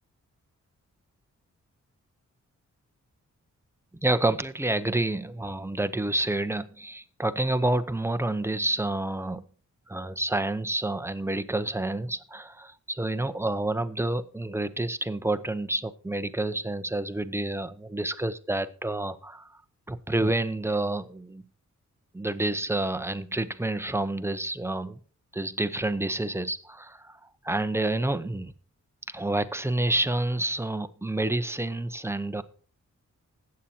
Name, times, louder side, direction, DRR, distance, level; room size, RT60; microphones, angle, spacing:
voice 1, 4.0-9.4 9.9-19.6 19.9-21.4 22.1-25.0 25.3-28.5 29.1-32.4, right 2 dB, 10° right, 10 dB, 0.8 m, -29 dB
20.0 x 8.6 x 2.9 m, 0.40 s
wide cardioid pair, 110°, 29 cm